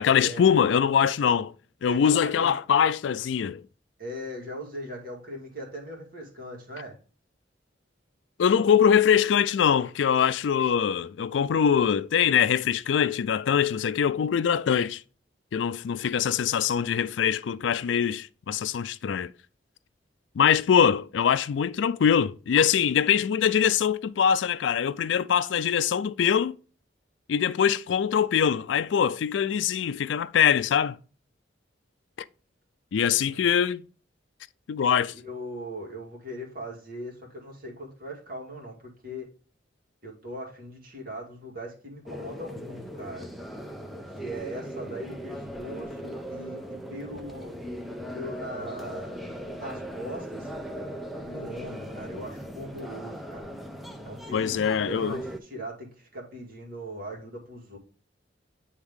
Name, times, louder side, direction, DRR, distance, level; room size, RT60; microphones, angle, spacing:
voice 1, 0.0-1.5 1.8-3.6 8.4-15.0 15.5-19.3 20.4-26.5 27.3-31.0 32.9-33.8 34.7-35.1 54.3-55.2, left 8 dB, 80° left, 0.4 m, -23 dB
voice 2, 1.9-2.5 4.0-7.0 33.2-33.5 35.1-39.3 40.0-43.3 44.1-46.6 46.9-47.6 48.1-49.2 49.6-50.5 51.2-53.5 54.0-57.8, equal, 50° right, 2.2 m, -39 dB
sound 1, 42.1-55.4, equal, ahead, 0.6 m, -38 dB
9.6 x 3.6 x 3.6 m
head